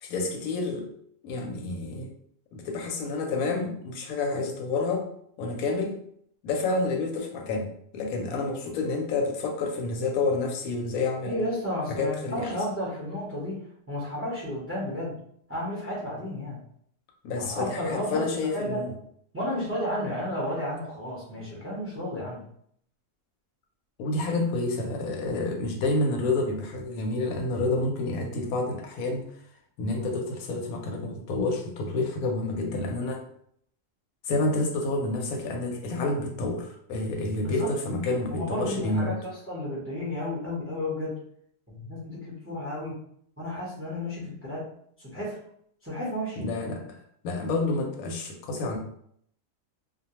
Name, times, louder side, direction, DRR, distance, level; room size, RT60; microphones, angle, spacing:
voice 1, 0.0-0.9 1.2-2.1 2.5-5.0 5.4-6.0 6.4-11.4 11.9-12.5 17.2-18.9 24.0-29.3 29.8-33.2 34.3-39.2 44.2-44.3 46.4-46.9 47.2-48.8, left 2 dB, 85° left, 2 dB, 1.0 m, -29 dB
voice 2, 11.2-15.2 15.5-16.6 17.4-18.8 19.3-22.4 37.4-37.7 38.3-41.2 41.7-43.0 43.4-44.7 45.0-45.3 45.8-46.4, left 1 dB, 15° right, -5 dB, 0.6 m, -32 dB
2.3 x 2.1 x 2.9 m, 0.67 s
omnidirectional pair, 1.4 m